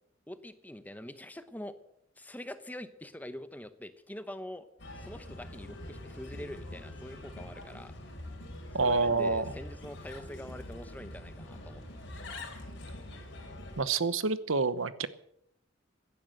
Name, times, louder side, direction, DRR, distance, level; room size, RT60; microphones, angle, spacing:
voice 1, 0.3-1.8 2.2-4.7 4.9-7.9 8.8-11.8, left 1 dB, 10° left, 11 dB, 0.8 m, -44 dB
Bird, 4.8-13.8, left 1 dB, 60° left, 3.5 m, -44 dB
voice 2, 8.7-9.4 13.8-15.1, right 4 dB, 75° right, 15 dB, 0.9 m, -27 dB
16.0 x 10.5 x 7.8 m, 0.75 s
head